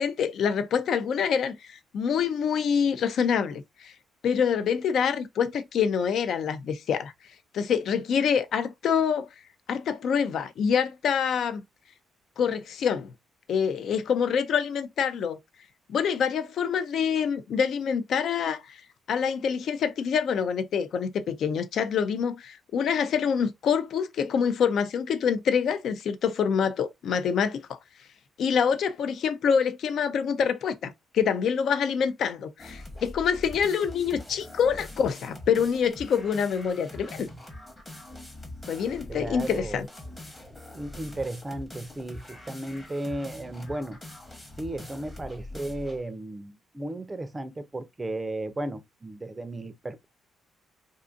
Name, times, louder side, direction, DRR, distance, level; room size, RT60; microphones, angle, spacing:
voice 1, 0.0-3.9 4.2-7.1 7.5-9.3 9.7-11.6 12.4-13.1 13.5-15.4 15.9-18.8 19.1-27.8 28.4-37.3 38.7-39.9, left 7 dB, 65° left, 0.4 m, -26 dB
sound 1, 32.6-46.1, left 1 dB, 20° left, 0.9 m, -43 dB
voice 2, 39.1-39.9 40.7-44.0 44.6-50.0, right 1 dB, 20° right, 0.4 m, -35 dB
2.5 x 2.4 x 2.4 m
cardioid pair, 90°, 0 cm